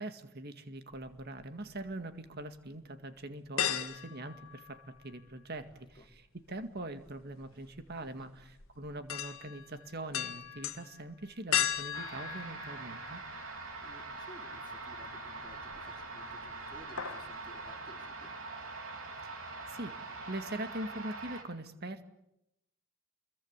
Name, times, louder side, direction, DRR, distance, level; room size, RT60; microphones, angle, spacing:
voice 1, 0.0-13.2 19.2-22.0, right 1 dB, 50° right, 9 dB, 2.1 m, -43 dB
sound 1, 0.9-1.9 2.4-2.5 3.6-5.3 5.6-13.5 13.9-14.0 15.4-16.0 16.3-16.5 16.8-17.3 17.6-17.7, left 9 dB, 70° left, 1.7 m, -37 dB
voice 2, 5.7-6.1 8.0-8.3 13.8-18.3, left 1 dB, 20° left, 2 dB, 3.5 m, -56 dB
sound 2, 11.9-21.4, right 3 dB, 65° right, 4.3 m, -43 dB
28.5 x 22.0 x 8.3 m, 0.82 s
head